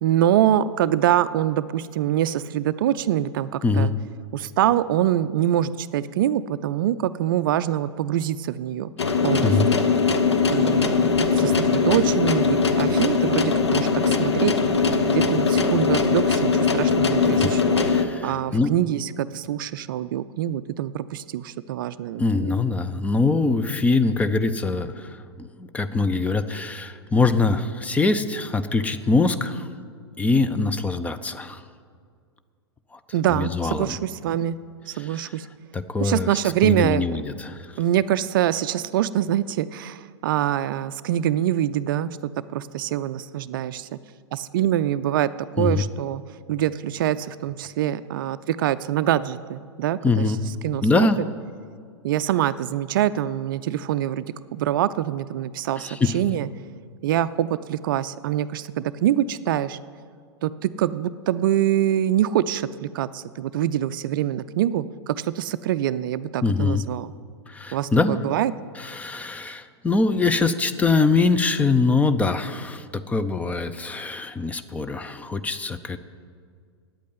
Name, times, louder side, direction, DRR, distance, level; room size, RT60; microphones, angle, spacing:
voice 1, 0.0-3.9 4.3-8.9 9.2-9.8 10.5-14.5 15.1-17.8 18.2-22.5 33.1-34.6 34.9-35.5 36.0-37.0 37.8-44.0 44.3-45.3 45.6-46.2 46.5-50.3 50.6-51.1 52.0-56.5 57.0-59.8 60.4-67.1 67.7-68.5, right 11 dB, 50° right, 15 dB, 0.4 m, -24 dB
sound 1, 9.0-18.0, left 5 dB, 75° left, 0.9 m, -21 dB
voice 2, 17.8-18.7 22.2-29.7 30.2-31.6 32.9-33.0 33.3-34.0 35.0-35.3 35.7-36.3 36.6-37.7 45.6-45.8 50.0-50.4 50.8-51.2 55.8-56.2 66.4-66.8 67.5-68.2 68.8-76.0, left 3 dB, 10° left, 10 dB, 0.5 m, -23 dB
8.8 x 8.3 x 9.3 m, 2.1 s
figure-of-eight pair, 95°, 14 cm